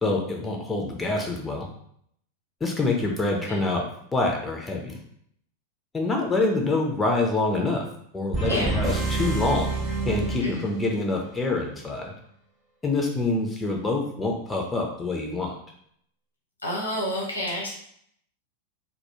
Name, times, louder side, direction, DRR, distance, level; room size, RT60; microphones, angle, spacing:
voice 1, 0.0-1.7 2.6-3.8 4.1-5.0 5.9-7.8 8.1-9.7 10.1-12.1 12.8-15.5, left 2 dB, 15° left, 0 dB, 0.4 m, -26 dB
sound 1, 8.3-11.1, right 3 dB, 25° right, 0.8 m, -28 dB
voice 2, 16.6-17.7, equal, 80° left, -3 dB, 0.8 m, -29 dB
2.2 x 2.1 x 2.9 m, 0.68 s
figure-of-eight pair, 90°, 0 cm